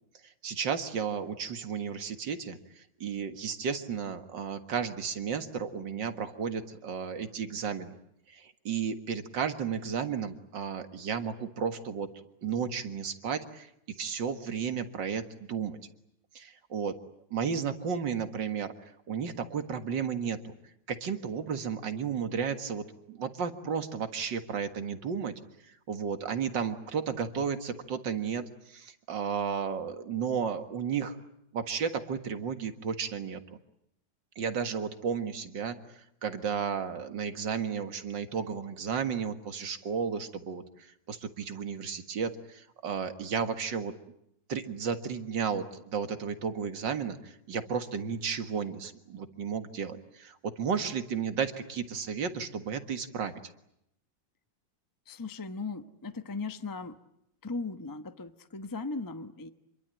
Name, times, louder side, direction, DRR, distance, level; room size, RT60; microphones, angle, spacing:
voice 1, 0.4-7.9 8.3-12.1 12.4-13.7 14.0-15.8 16.3-17.0 17.3-18.7 19.1-20.5 20.9-31.2 31.5-33.4 34.4-40.6 41.1-43.9 44.5-53.3, right 6 dB, 75° right, 8 dB, 2.4 m, -33 dB
voice 2, 55.1-56.9 57.4-59.5, left 3 dB, 15° left, 9 dB, 0.8 m, -37 dB
26.5 x 23.0 x 9.0 m, 0.77 s
omnidirectional pair, 2.0 m